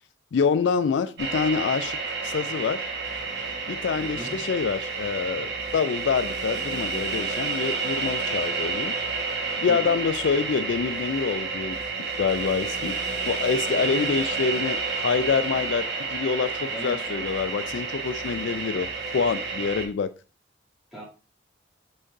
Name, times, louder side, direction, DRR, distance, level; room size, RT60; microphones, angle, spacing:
voice 1, 0.3-2.0 2.2-2.8 3.7-9.0 9.6-13.0 13.3-20.1, left 5 dB, 70° left, 13 dB, 0.3 m, -26 dB
sound 1, 1.2-19.8, right 4 dB, 60° right, 1.3 m, -30 dB
voice 2, 4.0-4.4 9.7-10.0 13.7-14.1 16.7-17.3 20.9-21.0, equal, ahead, -7 dB, 2.5 m, -38 dB
6.5 x 6.2 x 2.5 m, 0.33 s
head